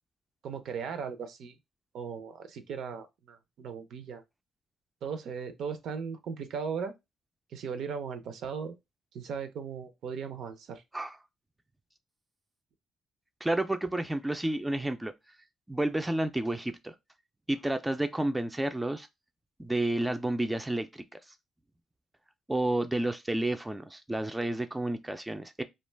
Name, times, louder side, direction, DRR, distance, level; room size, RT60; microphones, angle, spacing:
voice 1, 0.4-1.6 1.9-4.2 5.0-6.9 7.5-8.7 9.1-10.8, right 6 dB, 75° right, 0.5 m, -37 dB
voice 2, 13.4-15.1 15.7-16.9 17.5-19.1 19.6-21.0 22.5-25.6, right 1 dB, 10° right, 0.3 m, -30 dB
2.4 x 2.2 x 3.2 m
cardioid pair, 90°, 0 cm